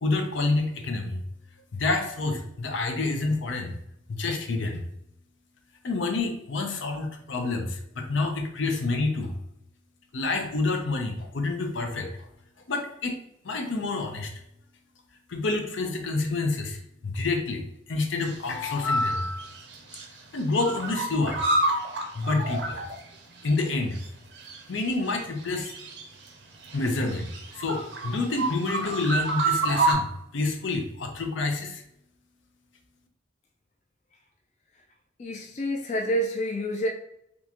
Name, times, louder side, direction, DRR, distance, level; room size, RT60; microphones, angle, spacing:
voice 1, 0.0-1.2 1.7-3.8 4.1-4.9 5.8-9.3 10.1-12.3 12.7-13.1 13.4-14.3 15.3-19.6 20.3-21.4 22.1-22.8 23.4-24.0 24.7-25.7 26.7-31.8, left 3 dB, 80° left, 0.6 m, -28 dB
sound 1, 18.2-18.7 19.0-20.1 20.4-23.7 23.9-24.1 24.4-26.3 26.6-29.9, right 2 dB, 65° right, 0.6 m, -29 dB
voice 2, 35.2-36.9, equal, 35° left, 0.3 m, -28 dB
3.5 x 2.5 x 2.8 m
head